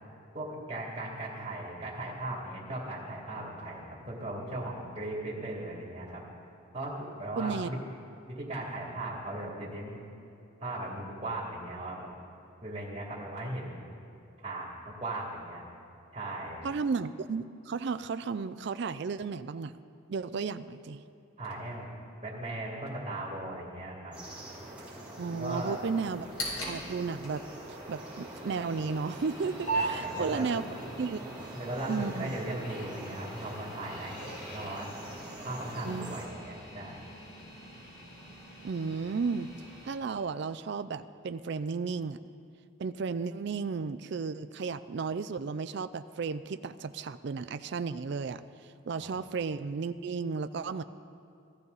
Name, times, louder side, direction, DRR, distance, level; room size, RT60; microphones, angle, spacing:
voice 1, 0.3-6.2 6.7-7.8 8.3-10.0 10.6-12.1 12.6-13.8 14.4-15.6 16.1-16.7 21.4-21.9 22.2-24.2 25.3-25.9 29.7-30.9 31.5-34.9 35.4-37.0 49.0-49.1, right 1 dB, 25° right, -6 dB, 2.6 m, -38 dB
voice 2, 7.4-7.7 16.6-19.7 20.1-21.0 25.2-26.3 26.6-27.4 27.9-30.6 31.0-31.2 31.9-32.4 35.9-36.1 38.6-39.5 39.8-42.2 42.8-48.4 48.9-50.8, right 5 dB, 55° right, 11 dB, 0.4 m, -33 dB
sound 1, 24.1-36.3, right 1 dB, 5° right, 2.9 m, -44 dB
sound 2, 26.1-39.9, right 2 dB, 85° left, 4.2 m, -41 dB
17.5 x 13.5 x 4.0 m, 2.7 s
head